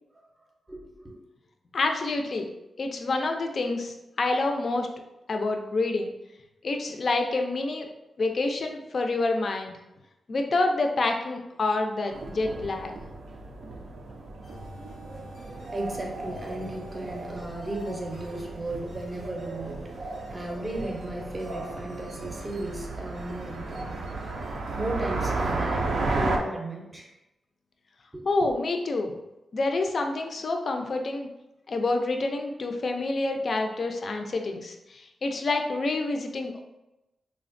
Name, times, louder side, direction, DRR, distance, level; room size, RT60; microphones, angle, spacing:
voice 1, 0.7-1.2 15.7-19.9 20.3-24.4 24.7-27.1 28.1-28.5, right 1 dB, 20° right, 0 dB, 0.6 m, -35 dB
voice 2, 1.7-2.5 2.8-4.9 5.3-6.1 6.6-7.9 8.2-9.7 10.3-13.0 28.3-29.2 29.5-31.3 31.7-36.6, left 2 dB, 50° left, 4 dB, 0.3 m, -27 dB
sound 1, 12.1-26.4, right 3 dB, 70° right, 0.4 m, -34 dB
sound 2, 14.4-25.7, equal, 90° left, 0.6 m, -49 dB
3.2 x 2.1 x 2.5 m, 0.94 s
wide cardioid pair, 110°, 0 cm